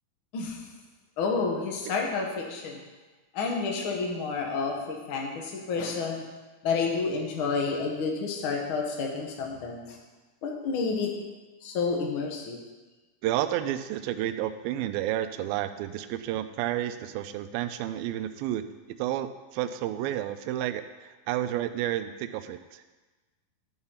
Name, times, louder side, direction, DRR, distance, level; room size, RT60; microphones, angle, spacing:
voice 1, 1.2-2.8 3.3-6.2 6.6-10.0 10.4-11.1 11.6-12.6, left 4 dB, 65° left, 1 dB, 1.2 m, -30 dB
voice 2, 13.2-18.6 19.0-22.8, right 12 dB, 85° right, 10 dB, 2.3 m, -31 dB
12.5 x 4.8 x 5.7 m, 1.2 s
omnidirectional pair, 4.2 m